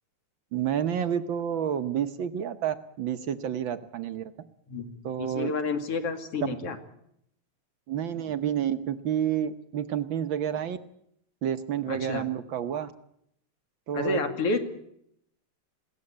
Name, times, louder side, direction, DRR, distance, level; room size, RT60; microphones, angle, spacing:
voice 1, 0.5-4.2 5.0-5.5 7.9-10.8 11.4-12.9 13.9-14.2, right 9 dB, 75° right, 10 dB, 1.1 m, -29 dB
voice 2, 5.2-6.8 11.9-12.2 13.9-14.6, left 3 dB, 50° left, 6 dB, 3.0 m, -29 dB
21.0 x 17.5 x 8.6 m, 0.73 s
omnidirectional pair, 3.5 m